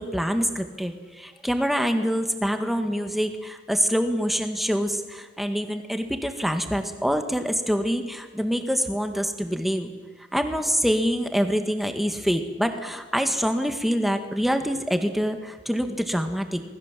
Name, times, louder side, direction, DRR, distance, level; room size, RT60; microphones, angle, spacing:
voice 1, 0.0-9.9 10.3-16.6, equal, ahead, 6 dB, 1.9 m, -25 dB
27.5 x 20.0 x 7.5 m, 1.3 s
head